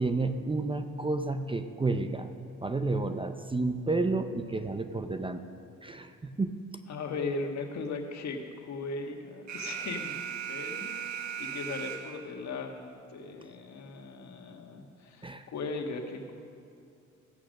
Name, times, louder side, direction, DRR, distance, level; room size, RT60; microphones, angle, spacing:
voice 1, 0.0-2.3 2.6-5.4 5.8-6.6 15.2-15.5, right 3 dB, 15° right, 9 dB, 0.6 m, -31 dB
voice 2, 6.9-10.2 10.5-10.9 11.4-16.3, left 3 dB, 65° left, 3 dB, 1.6 m, -38 dB
Alarm, 9.5-12.5, right 8 dB, 70° right, 1.0 m, -37 dB
14.5 x 8.6 x 6.4 m, 2.4 s
cardioid pair, 90°, 30 cm